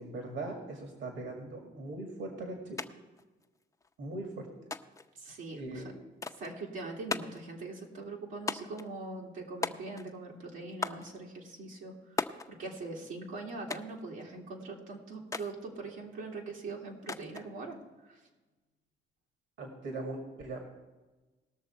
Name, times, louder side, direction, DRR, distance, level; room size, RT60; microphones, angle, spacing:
voice 1, 0.0-2.8 4.0-4.5 5.5-5.9 19.6-20.7, right 2 dB, 70° right, 3 dB, 2.0 m, -40 dB
sound 1, 2.8-2.9 3.2-3.9 4.7-5.1 6.2-6.5 7.1-7.5 8.5-8.9 9.6-10.2 10.8-11.1 12.2-12.5 13.7-14.0 15.3-15.5 17.1-17.5, left 4 dB, 15° left, 0.5 m, -37 dB
voice 2, 5.1-5.8 6.4-17.8 18.0-18.2, right 3 dB, 85° right, -2 dB, 2.2 m, -42 dB
19.0 x 6.6 x 4.5 m, 1.2 s
cardioid pair, 90°, 20 cm